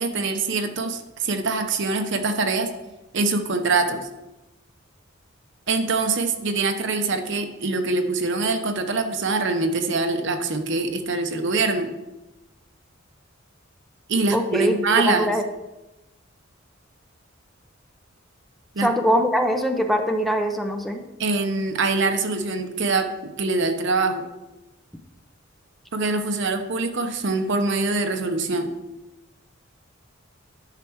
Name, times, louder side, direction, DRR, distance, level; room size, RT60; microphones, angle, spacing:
voice 1, 0.0-2.7 3.1-4.1 5.7-11.9 14.1-15.3 18.7-18.9 21.2-24.2 25.9-28.7, right 3 dB, 65° right, 6 dB, 0.9 m, -24 dB
voice 2, 14.3-15.4 18.8-21.0, equal, ahead, 4 dB, 0.6 m, -22 dB
10.5 x 5.9 x 4.7 m, 1.0 s
head